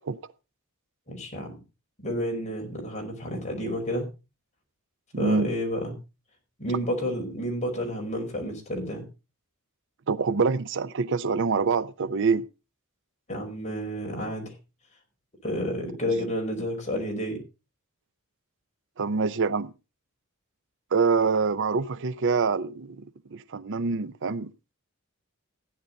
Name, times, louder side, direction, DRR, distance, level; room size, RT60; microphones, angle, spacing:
voice 1, 1.1-1.6 2.0-4.1 5.2-5.9 6.6-9.0 13.3-14.5 15.4-17.4, equal, 30° left, 5.0 m, -30 dB
voice 2, 5.1-5.5 10.1-12.4 19.0-19.7 20.9-23.0 23.3-24.5, right 5 dB, 55° right, 0.6 m, -25 dB
15.5 x 10.0 x 3.9 m
head